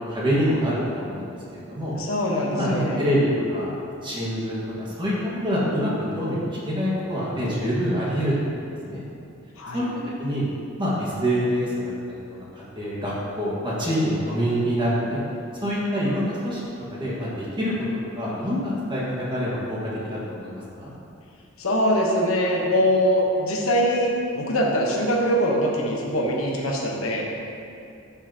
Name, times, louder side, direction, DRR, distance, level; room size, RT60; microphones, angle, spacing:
voice 1, 0.0-1.9 2.5-8.6 8.9-9.0 9.7-9.9 10.2-10.4 10.8-12.2 12.7-15.2 15.6-16.6 16.9-17.7 18.2-20.9, equal, 25° right, -7 dB, 1.7 m, -26 dB
voice 2, 1.9-3.0 9.6-9.9 21.6-27.3, equal, 85° left, -1 dB, 1.2 m, -23 dB
12.0 x 5.6 x 2.9 m, 2.6 s
head